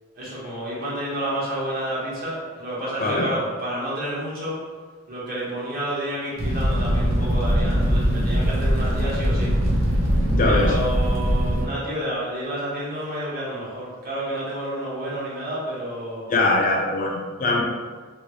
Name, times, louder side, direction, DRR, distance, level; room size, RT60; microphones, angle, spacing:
voice 1, 0.2-4.6 5.1-9.5 10.4-16.3, right 1 dB, 45° right, -7 dB, 1.1 m, -30 dB
Fire, 6.4-11.6, equal, 75° right, 0.8 m, -21 dB
voice 2, 10.3-10.8 16.3-17.6, left 2 dB, 40° left, 0 dB, 0.3 m, -22 dB
2.7 x 2.6 x 3.0 m, 1.5 s
head